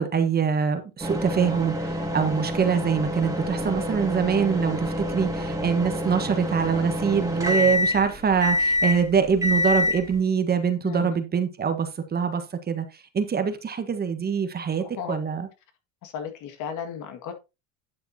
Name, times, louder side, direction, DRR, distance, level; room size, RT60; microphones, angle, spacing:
voice 1, 0.0-15.5, right 6 dB, 30° right, 1.3 m, -24 dB
sound 1, 1.0-10.2, left 1 dB, 10° right, 2.3 m, -27 dB
voice 2, 10.8-11.2 14.8-15.2 16.0-17.3, left 7 dB, 60° left, 2.0 m, -35 dB
11.0 x 7.0 x 2.8 m
supercardioid pair, 105°, 34 cm